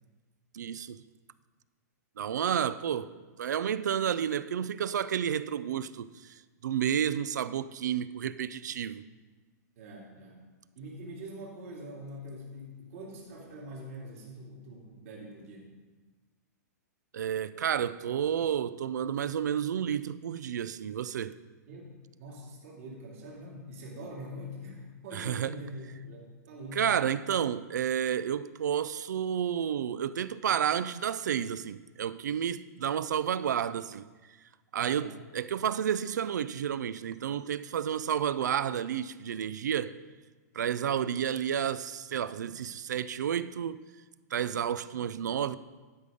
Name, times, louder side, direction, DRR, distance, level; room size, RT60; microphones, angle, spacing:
voice 1, 0.5-1.0 2.2-9.0 17.1-21.4 25.1-25.5 26.7-34.1 34.7-40.0 40.5-43.8 44.3-45.6, right 9 dB, 90° right, 0.4 m, -31 dB
voice 2, 9.8-10.4 10.7-15.7 21.7-26.9 34.8-35.1, equal, 55° right, 2.8 m, -44 dB
12.0 x 5.3 x 5.1 m
hypercardioid pair, 155°, 9 cm